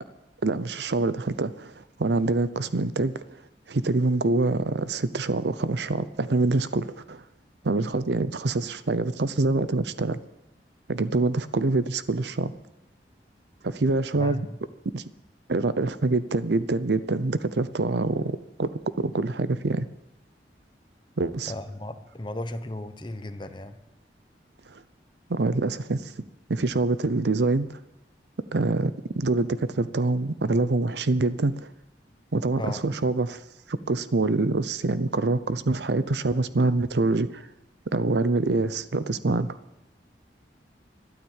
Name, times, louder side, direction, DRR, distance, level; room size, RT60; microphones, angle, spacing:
voice 1, 0.4-1.7 2.0-3.1 3.7-7.2 7.6-10.2 10.9-12.5 13.6-14.5 14.9-15.0 15.5-18.7 19.0-19.9 21.2-21.5 24.7-24.8 25.3-26.1 26.5-27.7 28.5-31.7 32.3-33.4 33.7-37.4 37.9-39.6, right 3 dB, 75° right, 0.7 m, -25 dB
voice 2, 14.1-14.6 21.5-23.8 32.6-32.8, left 1 dB, 25° left, 0.9 m, -35 dB
12.5 x 12.0 x 7.3 m
head